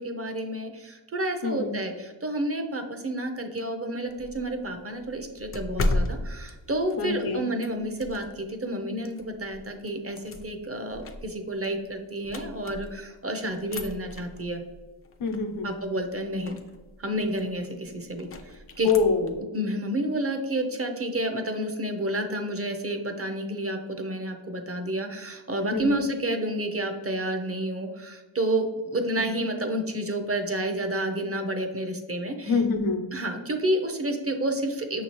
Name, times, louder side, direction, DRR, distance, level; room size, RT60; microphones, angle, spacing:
voice 1, 0.0-14.6 15.6-16.6 17.0-18.9 19.5-32.6 33.1-35.0, right 1 dB, 30° right, 5 dB, 0.5 m, -30 dB
voice 2, 1.4-1.7 7.0-7.4 15.2-15.7 18.8-19.3 25.7-26.0 29.2-29.3 32.4-33.0, left 4 dB, 90° left, 4 dB, 0.8 m, -25 dB
sound 1, 4.1-8.5 9.0-13.2 13.5-19.4, left 1 dB, 30° left, 0.4 m, -36 dB
6.1 x 2.8 x 3.0 m, 1.3 s
wide cardioid pair, 85°, 49 cm